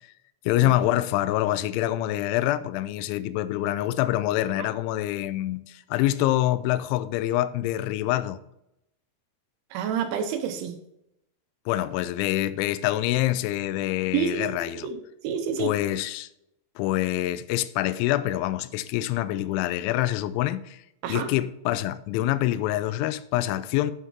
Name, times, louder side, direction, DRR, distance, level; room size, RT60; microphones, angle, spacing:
voice 1, 0.5-8.4 11.7-14.9 15.6-16.3 16.8-20.8 21.1-23.9, left 14 dB, 85° left, 2.6 m, -26 dB
voice 2, 9.7-10.7 14.1-15.0 15.2-15.7 21.0-21.3, right 7 dB, 80° right, 2.9 m, -28 dB
8.1 x 5.6 x 4.5 m
omnidirectional pair, 5.8 m